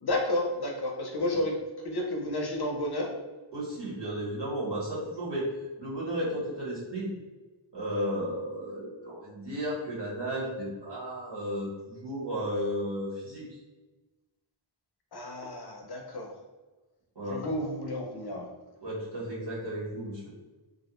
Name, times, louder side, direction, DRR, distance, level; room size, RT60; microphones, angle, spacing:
voice 1, 0.0-1.5 1.8-3.1 15.1-16.3 17.3-18.5, left 1 dB, 55° left, 1 dB, 0.5 m, -31 dB
voice 2, 3.5-5.5 5.8-7.1 7.7-13.4 17.1-17.4 18.8-20.2, equal, 55° right, -7 dB, 1.0 m, -34 dB
2.5 x 2.0 x 2.9 m, 1.2 s
wide cardioid pair, 40°, 48 cm